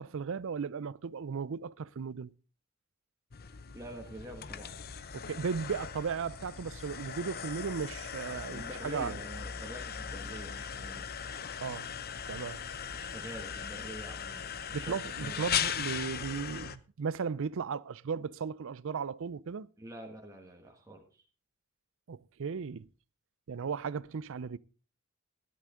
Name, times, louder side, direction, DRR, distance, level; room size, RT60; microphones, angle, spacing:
voice 1, 0.0-2.3 5.1-9.2 11.6-11.9 12.3-12.6 14.7-19.7 22.1-22.9 23.5-24.6, right 6 dB, 65° right, 0.5 m, -36 dB
sound 1, 3.3-16.8, left 7 dB, 45° left, 0.7 m, -39 dB
voice 2, 3.7-4.8 8.3-11.1 12.9-14.4 14.7-15.5 19.8-21.2, right 1 dB, 15° right, 1.5 m, -46 dB
13.5 x 11.0 x 3.7 m
head